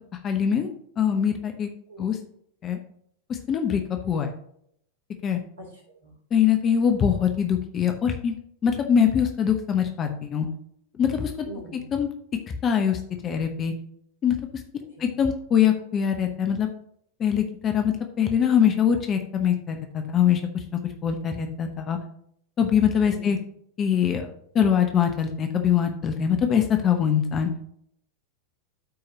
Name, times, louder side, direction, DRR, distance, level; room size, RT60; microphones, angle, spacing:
voice 1, 0.2-0.7 1.0-1.7 2.0-2.2 2.6-2.8 3.5-4.3 5.2-5.4 6.3-8.3 8.6-10.5 11.0-11.3 11.9-12.1 12.6-13.0 13.2-13.7 14.2-14.3 15.0-16.7 17.2-20.4 21.0-22.0 22.6-23.4 23.8-24.3 24.5-27.5, left 8 dB, 25° left, 5 dB, 0.9 m, -23 dB
voice 2, 1.9-2.2 5.6-6.1 11.4-11.9 15.0-15.2 23.1-23.4, right 1 dB, 70° right, 0 dB, 3.3 m, -43 dB
12.5 x 4.8 x 2.9 m, 0.69 s
figure-of-eight pair, 90°, 0 cm